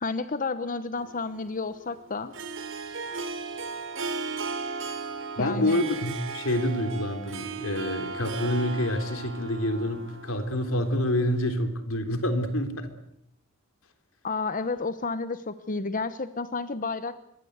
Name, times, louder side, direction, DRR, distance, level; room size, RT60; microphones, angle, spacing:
voice 1, 0.0-2.3 5.4-5.8 14.2-17.2, left 3 dB, 40° left, 12 dB, 1.0 m, -31 dB
Harp, 1.0-11.4, right 4 dB, 65° right, 3.4 m, -36 dB
voice 2, 5.4-12.9, left 1 dB, 90° left, 8 dB, 3.7 m, -27 dB
26.0 x 21.5 x 8.1 m, 0.78 s
head